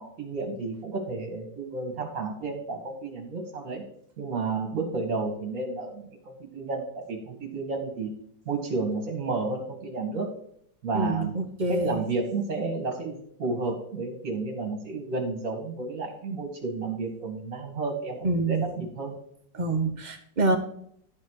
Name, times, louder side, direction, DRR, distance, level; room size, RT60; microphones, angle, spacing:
voice 1, 0.0-3.8 4.2-8.1 8.5-10.3 10.8-11.3 11.7-19.1, right 3 dB, 45° right, 3 dB, 2.1 m, -31 dB
voice 2, 10.9-12.0 18.2-18.6 19.5-20.6, right 2 dB, 30° right, 4 dB, 1.0 m, -26 dB
11.5 x 4.2 x 6.3 m, 0.68 s
omnidirectional pair, 1.9 m